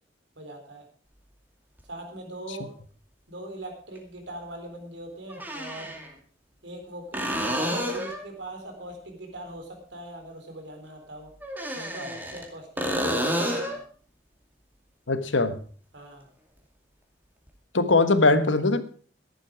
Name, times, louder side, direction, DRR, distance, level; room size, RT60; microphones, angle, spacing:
voice 1, 0.4-0.8 1.9-2.7 3.3-5.9 6.6-11.3 11.7-13.8 15.9-16.3, right 1 dB, 70° right, 4 dB, 4.1 m, -41 dB
sound 1, 1.8-1.9 4.0-4.1 5.3-6.1 7.1-8.3 11.4-12.5 12.8-13.8 17.5-17.6, equal, 10° right, 2.4 m, -29 dB
voice 2, 15.1-15.6 17.7-18.8, left 3 dB, 85° left, 11 dB, 1.4 m, -21 dB
14.5 x 11.0 x 4.9 m, 0.43 s
head